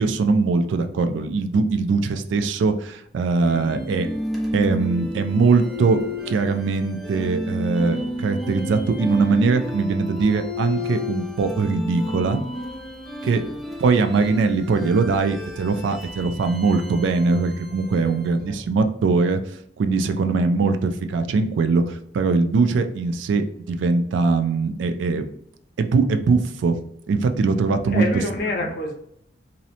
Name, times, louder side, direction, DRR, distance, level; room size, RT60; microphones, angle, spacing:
voice 1, 0.0-4.1 4.5-6.0 6.3-12.4 13.2-13.4 13.8-19.4 19.8-25.3 25.8-26.8 27.1-28.1 28.6-28.7, right 4 dB, 80° right, 8 dB, 0.3 m, -21 dB
sound 1, 3.4-18.5, left 1 dB, ahead, 0.3 m, -32 dB
voice 2, 18.0-18.6 27.9-28.9, left 2 dB, 55° left, 1 dB, 0.6 m, -28 dB
2.6 x 2.0 x 2.7 m, 0.72 s
head